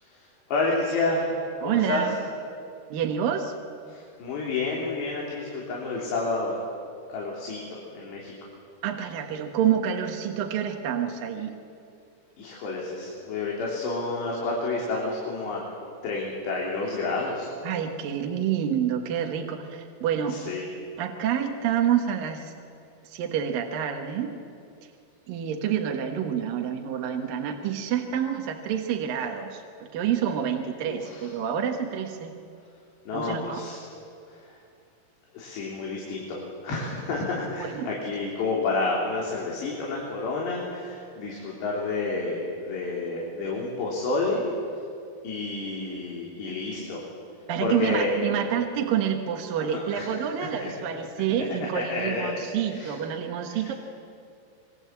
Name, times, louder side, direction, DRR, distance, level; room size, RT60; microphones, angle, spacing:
voice 1, 0.0-1.3 1.6-2.1 3.9-6.6 7.1-8.3 12.4-15.6 16.0-17.5 20.3-20.6 30.9-31.3 33.1-33.8 34.3-34.6 35.3-44.4 45.2-47.1 47.6-48.1 49.6-50.1 50.6-50.7 51.7-52.4 52.7-53.0 53.5-53.7, left 3 dB, 80° left, -3 dB, 5.7 m, -30 dB
voice 2, 1.6-2.2 2.9-3.5 8.8-11.5 17.6-20.6 21.0-22.5 23.0-24.3 25.3-32.3 33.1-33.6 37.6-37.9 47.5-53.7, right 9 dB, 65° right, 3 dB, 2.8 m, -28 dB
28.0 x 23.0 x 8.3 m, 2.5 s
omnidirectional pair, 4.9 m